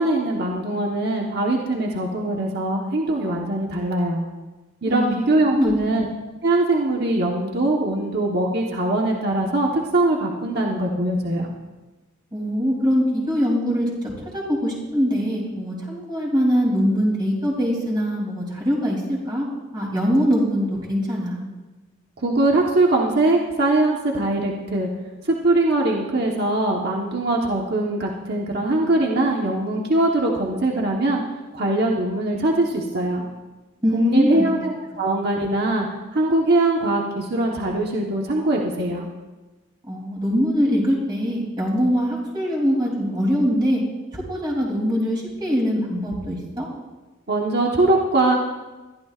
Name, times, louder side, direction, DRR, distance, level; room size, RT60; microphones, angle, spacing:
voice 1, 0.0-4.2 4.8-6.1 6.4-11.5 22.2-24.9 25.2-31.2 31.5-33.2 33.9-35.9 36.1-39.1 47.3-48.4, right 2 dB, 55° right, -1 dB, 1.3 m, -22 dB
voice 2, 4.9-5.2 5.5-6.0 12.3-19.5 19.7-21.4 33.8-34.5 39.9-43.8 44.1-46.7, equal, 20° right, -4 dB, 3.3 m, -22 dB
21.5 x 14.0 x 2.5 m, 1.2 s
head